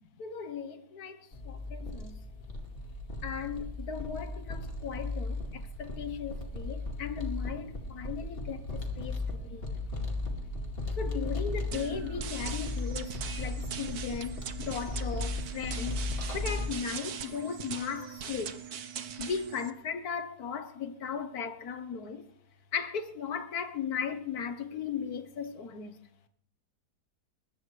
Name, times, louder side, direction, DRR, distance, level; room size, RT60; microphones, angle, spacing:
voice 1, 0.0-2.2 3.2-9.7 11.0-16.0 16.3-18.6 19.2-22.2 22.7-26.0, left 6 dB, 75° left, 1.6 m, -37 dB
sound 1, 1.3-16.7, left 2 dB, 35° left, 2.5 m, -36 dB
sound 2, 11.7-19.7, right 8 dB, 75° right, 1.5 m, -41 dB
21.5 x 20.5 x 3.3 m
omnidirectional pair, 1.7 m